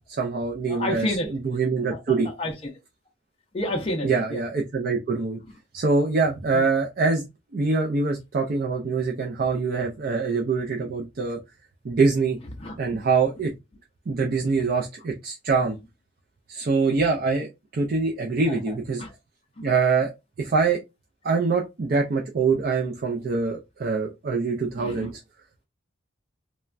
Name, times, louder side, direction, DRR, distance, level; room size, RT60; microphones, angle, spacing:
voice 1, 0.1-2.3 4.0-5.4 5.7-7.3 7.5-11.4 11.8-12.4 12.8-13.5 14.1-15.8 16.5-19.0 19.6-20.1 20.4-20.8 21.2-25.2, right 4 dB, 45° right, 0.4 m, -24 dB
voice 2, 0.7-1.3 1.9-2.7 3.5-4.4 6.5-6.7 12.6-12.8 14.5-14.6 17.9-18.0 18.5-18.7 19.0-19.1 19.6-19.7 24.8-25.1, left 1 dB, 30° left, 0.5 m, -30 dB
3.2 x 2.1 x 2.4 m
head